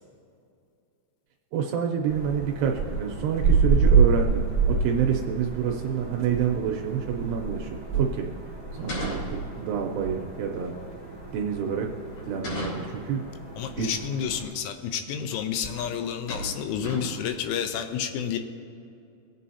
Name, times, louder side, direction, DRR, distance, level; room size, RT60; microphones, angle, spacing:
voice 1, 1.5-8.3 8.7-10.7 11.3-11.9 12.3-13.2 13.8-14.0, right 7 dB, 85° right, 2 dB, 2.5 m, -28 dB
sound 1, 2.1-14.5, right 5 dB, 30° left, 1.6 m, -27 dB
sound 2, 8.7-9.8 12.1-13.1 14.7-14.8 15.2-15.5 15.7-16.0 16.3-17.3, left 1 dB, 60° left, 4.9 m, -37 dB
voice 2, 13.6-18.4, left 8 dB, 90° left, 7 dB, 3.3 m, -30 dB
21.5 x 8.2 x 2.8 m, 2.5 s
omnidirectional pair, 5.4 m